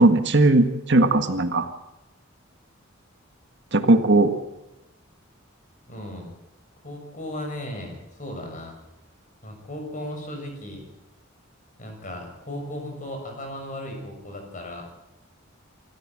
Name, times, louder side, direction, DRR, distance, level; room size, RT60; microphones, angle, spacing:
voice 1, 0.0-1.7 3.7-4.3, right 2 dB, 60° right, 8 dB, 1.6 m, -18 dB
voice 2, 5.9-6.3 6.8-8.8 9.4-10.8 11.8-14.9, left 1 dB, 40° left, 3 dB, 6.6 m, -36 dB
25.0 x 14.5 x 7.6 m, 0.94 s
head